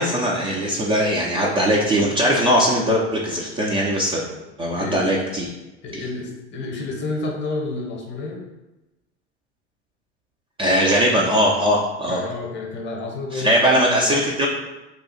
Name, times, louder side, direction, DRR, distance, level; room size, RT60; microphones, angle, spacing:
voice 1, 0.0-4.3 4.6-5.5 5.9-6.0 10.6-12.2 13.3-14.5, equal, 15° right, -3 dB, 0.4 m, -20 dB
voice 2, 4.7-5.1 5.8-8.4 12.1-14.2, left 2 dB, 35° left, 1 dB, 0.8 m, -30 dB
2.8 x 2.3 x 4.0 m, 1.0 s
figure-of-eight pair, 80°, 35 cm